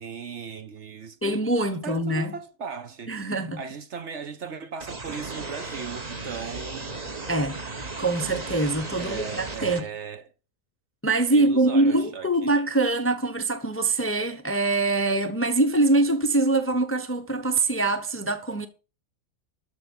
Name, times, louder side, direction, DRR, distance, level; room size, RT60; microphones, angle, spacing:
voice 1, 0.0-6.9 9.0-10.3 11.3-12.5, right 6 dB, 55° right, 1.1 m, -38 dB
voice 2, 1.2-2.3 3.1-3.6 7.3-7.6 8.0-9.9 11.0-18.7, right 2 dB, 10° left, 0.7 m, -24 dB
sound 1, 4.8-9.8, right 3 dB, 30° right, 1.2 m, -35 dB
12.5 x 4.6 x 7.1 m
omnidirectional pair, 1.5 m